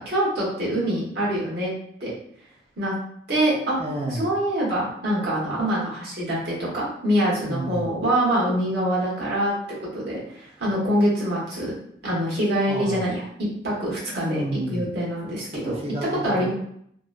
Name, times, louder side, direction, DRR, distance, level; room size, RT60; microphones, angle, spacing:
voice 1, 0.1-1.7 2.0-2.1 2.8-2.9 3.3-3.8 4.1-9.5 9.8-11.7 12.0-13.2 13.6-14.4 14.7-15.7 16.2-16.5, right 1 dB, 65° right, -7 dB, 1.1 m, -24 dB
voice 2, 3.8-4.3 7.4-7.9 12.7-13.0 14.1-14.9 15.6-16.5, right 1 dB, 35° right, -2 dB, 0.5 m, -30 dB
2.8 x 2.1 x 2.3 m, 0.70 s
head